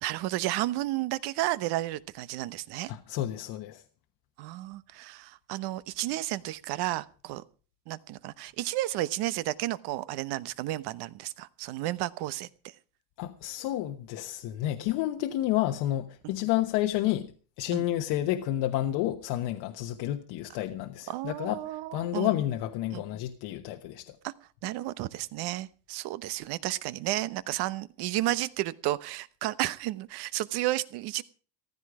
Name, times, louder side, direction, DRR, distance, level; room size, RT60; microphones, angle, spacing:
voice 1, 0.0-2.9 4.4-7.4 7.9-12.5 17.7-17.8 21.1-22.3 22.9-23.0 24.2-24.3 24.6-31.2, right 16 dB, 65° right, 1.0 m, -32 dB
voice 2, 2.9-3.8 13.2-24.2, left 14 dB, 70° left, 1.2 m, -30 dB
15.0 x 13.5 x 4.9 m
cardioid pair, 120°, 41 cm